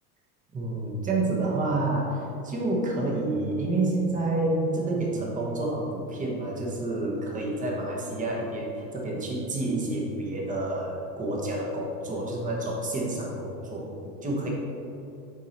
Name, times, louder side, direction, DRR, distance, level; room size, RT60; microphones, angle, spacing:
voice 1, 0.5-13.9 14.2-14.5, right 2 dB, 15° right, -2 dB, 1.1 m, -29 dB
7.5 x 4.6 x 4.3 m, 2.7 s
supercardioid pair, 140°, 47 cm